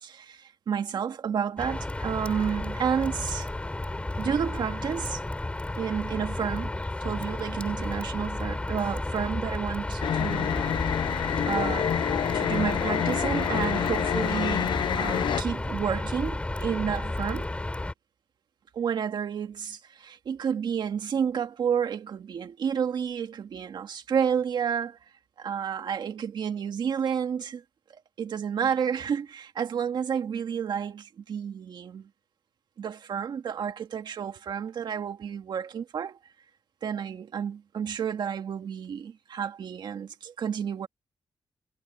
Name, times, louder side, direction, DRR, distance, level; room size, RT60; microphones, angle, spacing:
voice 1, 0.0-3.5 4.2-5.2 5.8-6.7 7.0-11.0 11.5-11.9 12.3-17.5 18.7-25.0 25.4-27.6 28.2-32.1 32.8-36.2 36.8-40.9, right 7 dB, 70° right, 2.0 m, -30 dB
sound 1, 1.6-17.9, left 2 dB, 15° left, 4.4 m, -32 dB
sound 2, 10.0-15.4, left 9 dB, 85° left, 0.6 m, -27 dB
wide cardioid pair, 125°, 8 cm